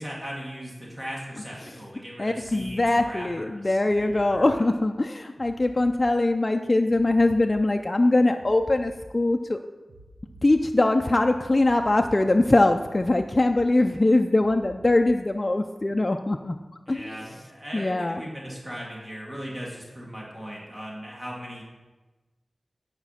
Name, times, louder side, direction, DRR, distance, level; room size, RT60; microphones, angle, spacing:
voice 1, 0.0-4.6 16.9-21.6, equal, 35° right, -4 dB, 1.8 m, -38 dB
voice 2, 2.2-9.6 10.4-16.6 16.9-17.2 17.7-18.2, left 2 dB, 35° left, 4 dB, 0.4 m, -22 dB
sound 1, 2.4-3.0 3.9-4.5 5.4-6.0 6.9-7.5 8.4-9.0 9.9-10.5 11.4-12.0 12.9-13.5 14.4-15.0 15.9-16.0, right 3 dB, 85° right, 1.1 m, -50 dB
9.7 x 5.2 x 5.6 m, 1.2 s
wide cardioid pair, 85°, 0 cm